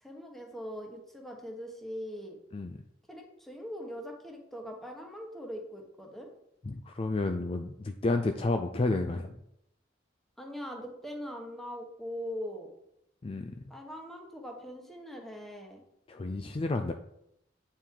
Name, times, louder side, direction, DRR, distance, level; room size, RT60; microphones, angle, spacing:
voice 1, 0.0-2.4 3.1-6.3 10.4-12.7 13.7-15.8, equal, ahead, 1 dB, 1.2 m, -41 dB
voice 2, 6.6-9.4 13.2-13.5 16.1-16.9, left 2 dB, 30° left, 6 dB, 0.4 m, -31 dB
8.7 x 4.6 x 3.7 m, 0.77 s
head